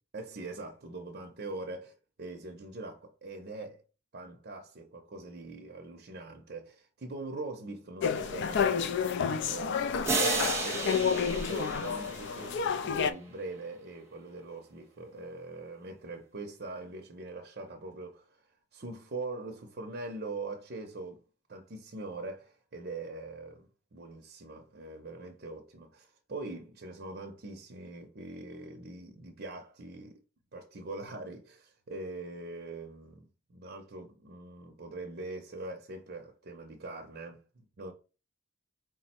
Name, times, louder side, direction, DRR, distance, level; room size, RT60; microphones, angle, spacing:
voice 1, 0.1-1.9 2.2-3.8 4.1-9.0 9.4-21.2 21.5-30.2 30.5-37.9, right 2 dB, 45° right, 0.6 m, -42 dB
sound 1, 8.0-13.1, left 6 dB, 55° left, 0.3 m, -30 dB
sound 2, 10.0-12.7, right 3 dB, 10° right, 0.8 m, -32 dB
4.6 x 2.1 x 4.3 m
head